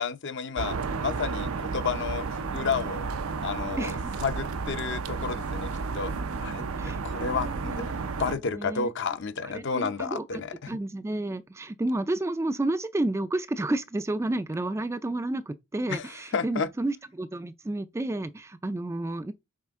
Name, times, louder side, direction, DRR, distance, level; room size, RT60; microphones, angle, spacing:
voice 1, 0.0-2.3 2.5-5.7 5.9-7.9 8.2-10.8 15.9-16.1 16.3-16.7, left 5 dB, 60° left, 0.7 m, -31 dB
sound 1, 0.6-8.4, right 4 dB, 85° right, 0.6 m, -32 dB
voice 2, 6.8-7.9 8.3-8.9 9.4-19.3, right 2 dB, 15° right, 0.3 m, -31 dB
7.4 x 4.4 x 3.6 m
head